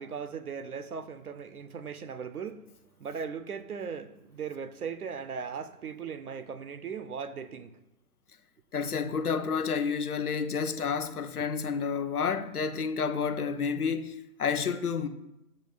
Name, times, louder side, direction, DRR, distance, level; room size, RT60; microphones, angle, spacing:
voice 1, 0.0-2.7 3.0-7.8, right 6 dB, 75° right, 0.7 m, -38 dB
voice 2, 8.7-15.1, left 6 dB, 75° left, 0.8 m, -30 dB
7.1 x 6.3 x 2.3 m
figure-of-eight pair, 135°, 45 cm